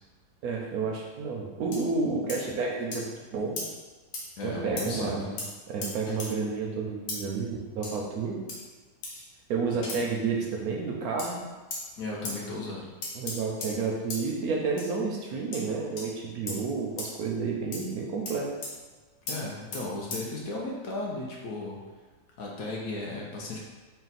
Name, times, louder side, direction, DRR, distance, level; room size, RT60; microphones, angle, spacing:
voice 1, 0.4-3.6 4.4-5.3 5.7-8.4 9.5-11.4 13.1-18.5, right 4 dB, 70° right, -1 dB, 1.0 m, -30 dB
sound 1, 1.7-1.8 2.3-2.4 2.9-3.0 3.6-3.7 4.1-4.3 4.8-4.9 5.4-5.5 5.8-6.3 7.1-7.2 7.8-8.0 8.5-8.7 9.0-9.2 9.8-10.0 11.2-11.3 11.7-11.8 12.3-12.4 13.0-13.7 14.1-14.2 14.8-14.9 15.5-15.7 16.0-16.1 16.5-16.6 17.0-17.1 17.7-17.9 18.3-18.4 18.6-18.7 19.3-19.4 19.7-19.8 20.1-20.2, left 2 dB, 85° left, 1.4 m, -36 dB
voice 2, 4.4-5.4 12.0-12.9 19.3-21.8 22.4-23.6, left 2 dB, 65° left, -2 dB, 1.0 m, -35 dB
4.1 x 2.3 x 4.0 m, 1.4 s
omnidirectional pair, 1.8 m